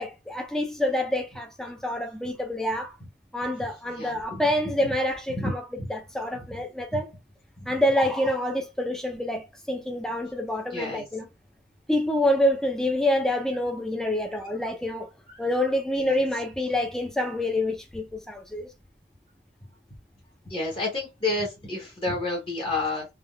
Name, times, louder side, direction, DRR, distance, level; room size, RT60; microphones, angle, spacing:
voice 1, 0.0-2.9 3.3-5.6 5.9-7.1 7.7-11.3 11.9-15.1 15.4-18.7, left 1 dB, 5° left, 0.5 m, -27 dB
voice 2, 3.9-4.4 5.3-5.5 5.8-5.9 6.9-7.0 7.6-7.7 10.7-11.0 16.0-16.2 20.5-23.1, left 2 dB, 30° left, 1.0 m, -30 dB
3.6 x 2.3 x 2.2 m
head